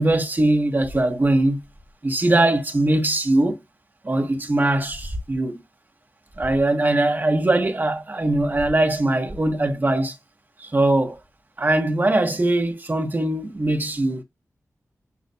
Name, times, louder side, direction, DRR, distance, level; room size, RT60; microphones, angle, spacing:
voice 1, 0.0-1.6 2.0-3.6 4.0-5.6 6.4-10.1 10.6-11.2 11.6-14.2, right 1 dB, 35° right, 2.7 m, -21 dB
10.5 x 4.1 x 2.2 m
wide cardioid pair, 90°, 6 cm